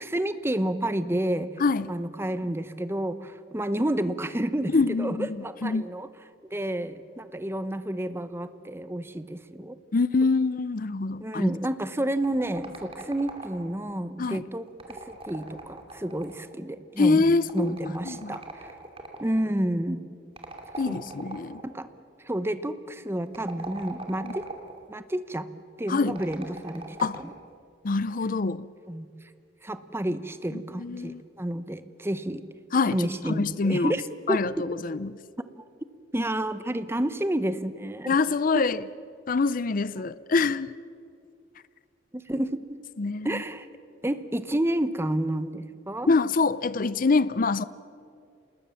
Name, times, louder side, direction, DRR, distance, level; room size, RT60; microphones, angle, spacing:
voice 1, 0.0-1.6 1.9-6.1 6.5-9.8 11.2-17.2 17.5-18.7 19.2-20.0 20.9-21.1 21.6-21.9 22.2-24.5 24.9-25.5 25.8-27.3 28.9-29.1 29.6-32.4 32.9-34.0 34.3-34.7 36.1-38.2 38.5-38.7 42.1-42.7 43.2-43.7 44.0-46.1, right 1 dB, 15° right, 0.9 m, -30 dB
voice 2, 1.6-1.9 4.7-5.3 5.6-5.8 9.9-11.5 14.2-14.4 17.0-17.7 18.0-18.4 20.8-21.6 24.2-24.3 25.9-26.2 27.0-27.2 27.8-28.7 30.8-31.2 32.7-33.0 33.3-33.9 34.3-35.2 38.1-38.8 39.3-40.7 43.0-43.3 46.1-47.6, left 4 dB, 45° left, 0.5 m, -25 dB
sound 1, 12.2-13.9 14.7-16.5 17.5-19.3 20.4-21.7 23.2-24.8 26.1-27.4, right 2 dB, 30° right, 2.6 m, -41 dB
28.0 x 20.0 x 7.1 m
head